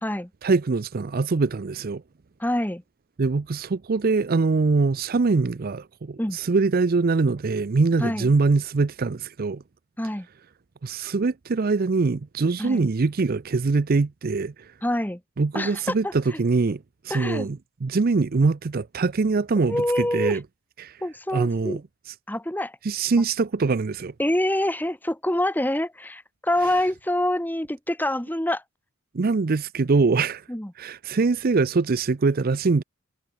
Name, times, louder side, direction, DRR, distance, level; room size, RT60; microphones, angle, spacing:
voice 1, 0.4-2.0 3.2-9.6 10.8-14.5 15.4-20.4 20.8-21.0 21.3-21.8 22.8-24.1 29.1-30.4 30.8-32.8, right 4 dB, 40° right, 0.5 m, -23 dB
voice 2, 2.4-2.8 6.2-6.4 8.0-8.3 10.0-10.3 12.6-12.9 14.8-15.2 15.5-16.4 17.1-17.5 19.7-20.4 21.0-21.8 22.3-22.8 24.2-28.6 30.5-30.7, left 1 dB, 10° left, 1.5 m, -26 dB
head